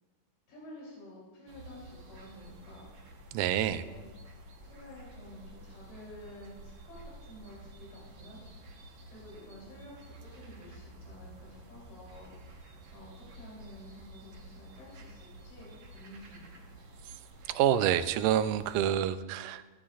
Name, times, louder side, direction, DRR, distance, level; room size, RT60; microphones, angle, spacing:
voice 1, 0.5-2.8 3.5-4.1 4.6-8.7 9.1-12.3 12.9-16.7, left 1 dB, 80° left, -5 dB, 5.1 m, -51 dB
sound 1, 1.5-19.0, right 1 dB, 60° right, 1.6 m, -51 dB
voice 2, 3.3-3.8 17.5-19.7, right 10 dB, 80° right, 12 dB, 2.1 m, -27 dB
14.5 x 12.5 x 2.5 m, 1.3 s
omnidirectional pair, 3.8 m